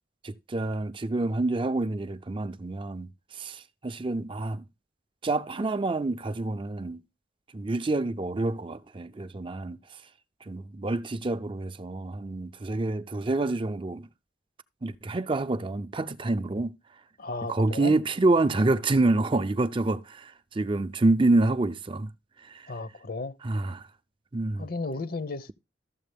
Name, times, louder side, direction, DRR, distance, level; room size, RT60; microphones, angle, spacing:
voice 1, 0.2-4.6 5.2-7.0 7.5-10.0 10.5-14.1 14.8-16.7 17.5-22.1 22.4-22.7 23.4-23.9 24.3-24.7, right 2 dB, 30° right, 0.5 m, -27 dB
voice 2, 17.2-18.0 22.7-23.3 24.6-25.5, left 3 dB, 55° left, 0.9 m, -34 dB
13.0 x 7.4 x 3.4 m
head